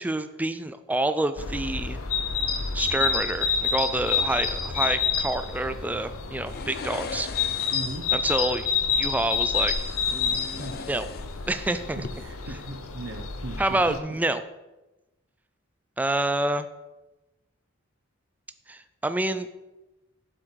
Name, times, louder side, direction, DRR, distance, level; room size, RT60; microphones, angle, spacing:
voice 1, 0.0-2.0 2.7-7.3 8.1-8.7 8.9-9.7 10.1-11.1 11.5-12.0 13.6-14.4 16.0-16.7 18.7-19.5, right 2 dB, 10° right, 10 dB, 0.3 m, -28 dB
sound 1, 1.4-14.0, left 6 dB, 90° left, 0.8 m, -28 dB
sound 2, 6.5-8.1 9.7-11.6 11.9-12.1, left 5 dB, 50° left, 0.5 m, -39 dB
voice 2, 7.7-8.0 10.6-10.8 12.0-14.0, right 2 dB, 60° right, 4 dB, 0.9 m, -38 dB
7.6 x 6.3 x 4.6 m, 1.0 s
head